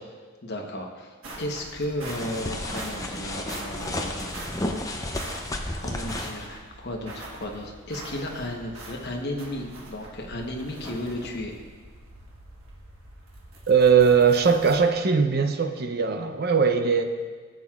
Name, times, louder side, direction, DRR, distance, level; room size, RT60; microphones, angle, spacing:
voice 1, 0.4-4.3 5.8-11.6, left 1 dB, 50° left, 1 dB, 1.1 m, -34 dB
sound 1, 1.2-14.8, right 2 dB, 70° right, 1.4 m, -43 dB
sound 2, 2.1-6.4, left 1 dB, 15° left, 0.6 m, -32 dB
voice 2, 13.7-17.0, right 6 dB, 45° right, 7 dB, 0.6 m, -20 dB
15.5 x 7.5 x 2.4 m, 1.5 s
head